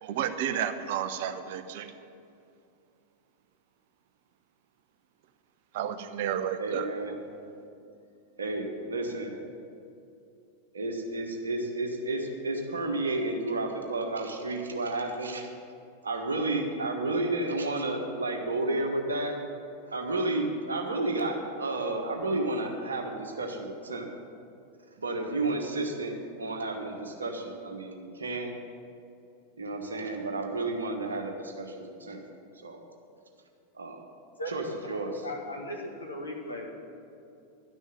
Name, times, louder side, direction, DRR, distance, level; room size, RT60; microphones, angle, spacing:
voice 1, 0.0-1.9 5.7-6.9, right 9 dB, 50° right, 9 dB, 0.7 m, -31 dB
voice 2, 6.6-7.1 8.4-9.4 10.7-15.5 16.0-19.3 19.9-24.1 25.0-28.5 29.6-32.2 32.6-32.8 33.7-34.0 34.5-35.1, right 2 dB, 75° right, 2 dB, 1.5 m, -31 dB
voice 3, 34.9-36.7, left 1 dB, 80° left, -1 dB, 2.0 m, -37 dB
12.0 x 6.3 x 9.1 m, 2.6 s
figure-of-eight pair, 90°, 0 cm